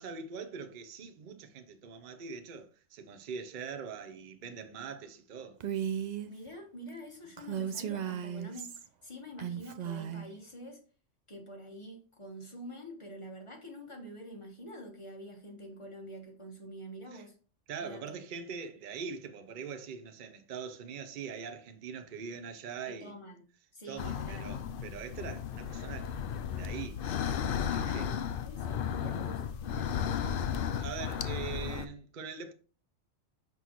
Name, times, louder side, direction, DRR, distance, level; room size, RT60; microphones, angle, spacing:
voice 1, 0.0-5.6 17.1-17.2 17.7-23.1 23.9-26.1 26.6-27.0 27.7-28.1 30.7-32.5, right 6 dB, 45° right, 0.7 m, -42 dB
Female speech woman speaking, 5.6-6.3 7.4-8.9 9.4-10.3, right 9 dB, 65° right, 0.4 m, -35 dB
voice 2, 6.2-10.8 11.3-17.3 17.8-18.2 22.8-23.4 23.7-24.5 27.7-30.1, equal, 25° left, 1.2 m, -47 dB
sound 1, 24.0-31.9, left 8 dB, 60° left, 0.6 m, -34 dB
6.1 x 5.3 x 3.0 m
omnidirectional pair, 1.3 m